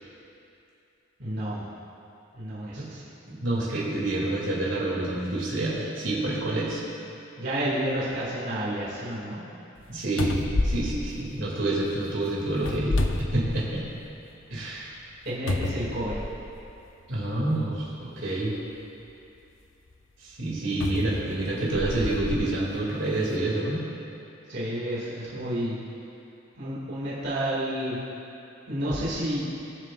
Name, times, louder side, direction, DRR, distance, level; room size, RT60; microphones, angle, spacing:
voice 1, 1.2-1.6 2.3-3.0 7.4-9.4 15.3-16.2 24.5-25.8 26.5-28.0 28.7-29.4, right 1 dB, 60° right, -9 dB, 2.3 m, -30 dB
voice 2, 3.3-6.8 9.9-13.0 13.3-13.8 14.5-14.9 17.1-18.5 20.2-23.8, right 2 dB, 75° right, -5 dB, 2.5 m, -28 dB
sound 1, 9.8-9.9 10.2-11.9 12.6-14.0 14.4-14.5 15.5-16.6 17.5-17.6 20.8-22.5 23.1-23.3, left 2 dB, 85° left, 0.7 m, -29 dB
20.5 x 7.4 x 2.5 m, 2.7 s
head